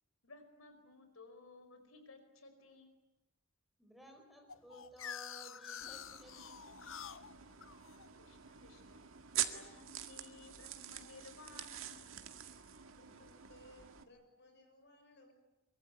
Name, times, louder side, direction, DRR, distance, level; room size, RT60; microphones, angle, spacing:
voice 1, 0.2-2.9 8.2-9.0 9.5-12.2, left 3 dB, 90° left, 7 dB, 5.0 m, -57 dB
voice 2, 3.8-6.6, right 1 dB, ahead, 3 dB, 5.0 m, -56 dB
sound 1, 4.5-9.3, left 8 dB, 70° left, 0.9 m, -49 dB
sound 2, 5.8-14.0, right 11 dB, 80° right, 2.0 m, -45 dB
voice 3, 13.0-15.3, left 1 dB, 55° left, 5 dB, 6.7 m, -62 dB
24.0 x 23.5 x 9.4 m, 0.96 s
head